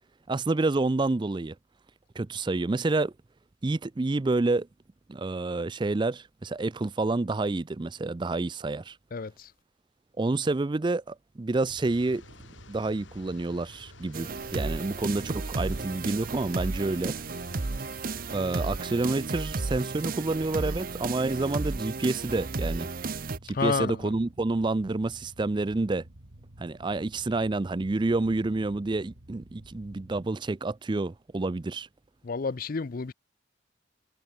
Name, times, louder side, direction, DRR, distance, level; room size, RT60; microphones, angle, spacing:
voice 1, 0.3-1.6 2.2-3.1 3.6-4.7 5.1-9.0 10.2-12.2 12.7-17.2 18.3-22.9 23.4-26.0 26.6-31.9, right 2 dB, 25° right, 0.4 m, -28 dB
voice 2, 9.1-9.5 23.5-24.1 32.2-33.1, left 4 dB, 45° left, 0.5 m, -30 dB
sound 1, 11.6-30.2, right 1 dB, 85° right, 2.5 m, -51 dB
sound 2, 11.8-19.3, left 4 dB, 75° left, 2.7 m, -54 dB
sound 3, 14.1-23.4, right 3 dB, 45° right, 0.8 m, -33 dB
head